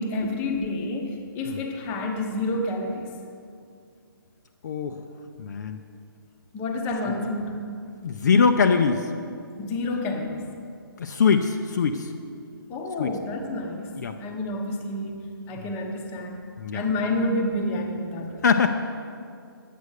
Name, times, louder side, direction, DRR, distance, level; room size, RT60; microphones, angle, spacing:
voice 1, 0.0-3.1 6.5-7.6 9.6-10.5 12.7-13.9 14.2-16.4 16.7-18.4, left 2 dB, 15° left, 3 dB, 0.9 m, -29 dB
voice 2, 4.6-5.0 5.4-5.8 7.0-7.2 8.0-9.1 11.0-12.1 13.0-13.1 14.0-14.2 15.6-15.7 16.6-16.9 18.4-18.7, left 5 dB, 50° left, 6 dB, 0.6 m, -22 dB
10.0 x 8.4 x 6.5 m, 2.3 s
hypercardioid pair, 155°, 12 cm